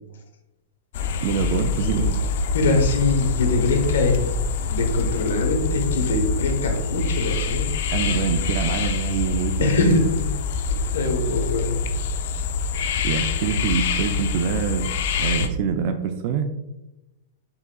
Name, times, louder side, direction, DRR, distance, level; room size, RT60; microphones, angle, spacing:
sound 1, 0.9-15.5, left 4 dB, 60° left, 0.4 m, -25 dB
voice 1, 1.2-2.2 7.9-10.0 13.0-14.9 15.2-16.5, right 7 dB, 45° right, 7 dB, 0.4 m, -25 dB
voice 2, 2.5-4.2 4.7-7.6 9.6-10.2 10.8-11.8, left 3 dB, 80° left, 3 dB, 1.1 m, -23 dB
5.6 x 3.7 x 2.3 m, 0.93 s
hypercardioid pair, 145°, 0 cm